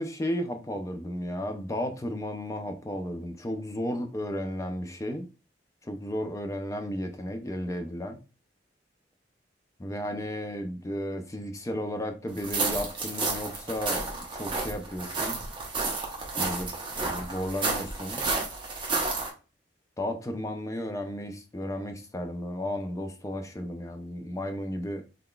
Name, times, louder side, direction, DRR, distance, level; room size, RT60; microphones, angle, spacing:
voice 1, 0.0-5.3 5.8-8.2 9.8-15.4 16.4-18.3 20.0-25.0, left 1 dB, 15° left, 0.4 m, -34 dB
sound 1, 12.4-19.3, right 3 dB, 25° right, 0.9 m, -31 dB
3.8 x 3.4 x 2.2 m
head